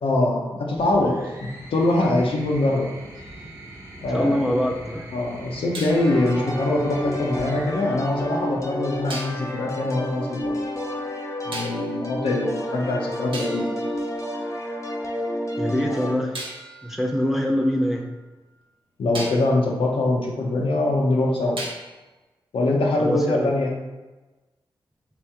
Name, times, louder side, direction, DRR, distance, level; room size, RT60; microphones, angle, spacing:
voice 1, 0.0-2.9 4.0-4.4 5.1-10.6 11.5-13.8 19.0-21.6 22.5-23.7, left 2 dB, 75° left, -2 dB, 0.6 m, -23 dB
sound 1, 0.8-9.2 10.4-11.0, right 1 dB, 25° right, 1.1 m, -42 dB
sound 2, 3.1-4.6 5.7-7.9 9.1-9.5 11.5-12.1 12.8-12.9 13.3-15.0 16.3-18.5 19.1-19.6 21.6-22.1, right 1 dB, 65° right, 0.8 m, -39 dB
voice 2, 4.1-5.1 15.6-16.4 16.8-18.1 23.0-23.5, equal, ahead, 0 dB, 0.5 m, -24 dB
sound 3, 5.9-16.2, left 1 dB, 30° left, 0.7 m, -30 dB
3.4 x 3.0 x 3.3 m, 1.2 s
supercardioid pair, 40°, 9 cm